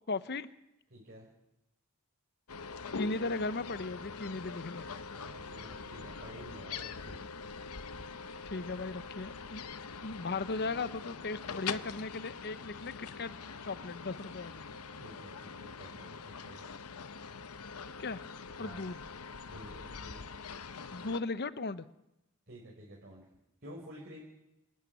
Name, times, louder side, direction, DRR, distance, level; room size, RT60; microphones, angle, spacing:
voice 1, 0.1-0.5 2.9-4.9 8.5-9.6 10.0-13.3 13.6-14.6 18.0-18.2 18.6-19.0 20.9-21.8, left 3 dB, 50° left, 15 dB, 0.9 m, -37 dB
voice 2, 0.9-1.3 5.2-7.3 15.0-16.6 18.5-18.8 19.4-20.2 22.5-23.3 23.6-24.2, equal, 45° right, -3 dB, 5.0 m, -51 dB
sound 1, 2.5-21.2, left 5 dB, 75° left, 1.0 m, -44 dB
27.0 x 11.5 x 9.5 m, 0.88 s
head